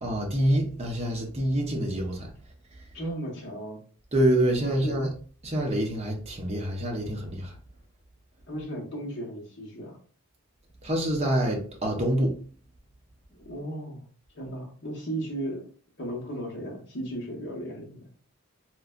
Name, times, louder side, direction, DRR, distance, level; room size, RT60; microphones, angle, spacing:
voice 1, 0.0-2.3 4.1-5.1 5.4-7.5 10.8-12.4, right 1 dB, 30° right, 0.6 m, -26 dB
voice 2, 2.9-3.8 4.6-5.0 8.5-10.0 13.3-14.0 14.3-15.7 16.0-18.1, right 1 dB, 55° left, 1.1 m, -35 dB
3.1 x 2.5 x 2.3 m
head